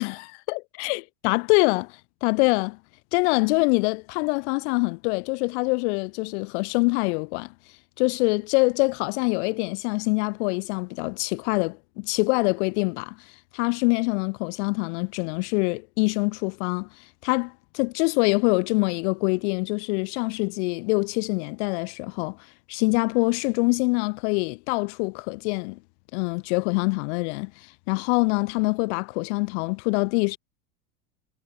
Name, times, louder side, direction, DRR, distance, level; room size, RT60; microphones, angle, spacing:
voice 1, 0.0-1.9 2.2-2.8 3.1-7.5 8.0-13.1 13.5-22.4 22.7-25.8 26.1-30.4, left 31 dB, 50° left, 0.9 m, -25 dB
supercardioid pair, 145°, 44 cm